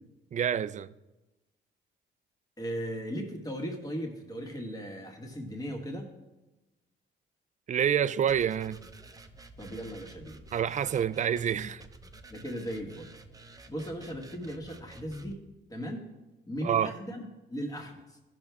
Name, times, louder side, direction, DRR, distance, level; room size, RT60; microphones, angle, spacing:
voice 1, 0.3-0.9 7.7-8.8 10.5-11.8 16.6-16.9, right 9 dB, 40° right, 0.4 m, -27 dB
voice 2, 2.6-6.1 9.6-10.4 12.3-13.1 13.7-15.4 15.7-16.1 16.5-18.2, equal, 20° left, 1.8 m, -37 dB
sound 1, 8.3-15.3, right 2 dB, 20° right, 0.8 m, -51 dB
14.0 x 6.2 x 3.5 m
cardioid pair, 90°, 20 cm